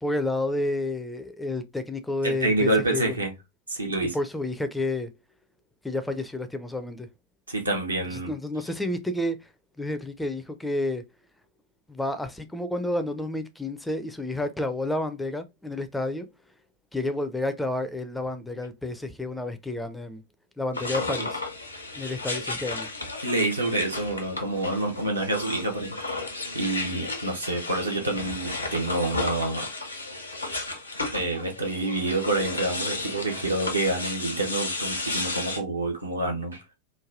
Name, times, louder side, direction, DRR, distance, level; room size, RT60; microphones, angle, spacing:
voice 1, 0.0-3.2 4.0-5.1 5.8-7.1 8.1-9.4 9.8-11.0 11.9-16.3 16.9-20.2 20.6-21.4 22.0-22.9, left 2 dB, 5° left, 0.4 m, -30 dB
voice 2, 2.2-3.3 3.7-4.2 7.5-8.3 21.2-21.3 23.2-26.2 26.5-29.7 31.1-36.6, right 2 dB, 80° right, 0.8 m, -27 dB
sound 1, 20.7-35.6, left 2 dB, 85° left, 0.6 m, -33 dB
3.1 x 2.2 x 2.5 m
figure-of-eight pair, 90°, 0 cm